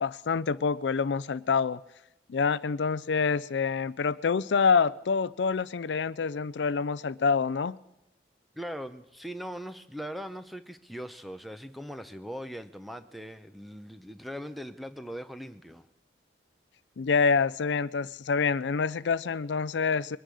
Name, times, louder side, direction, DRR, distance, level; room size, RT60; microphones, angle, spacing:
voice 1, 0.0-1.8 2.3-7.8 17.0-20.2, left 5 dB, 80° left, 18 dB, 0.4 m, -26 dB
voice 2, 8.5-15.9, equal, ahead, 10 dB, 0.7 m, -40 dB
22.5 x 10.0 x 6.3 m, 0.93 s
head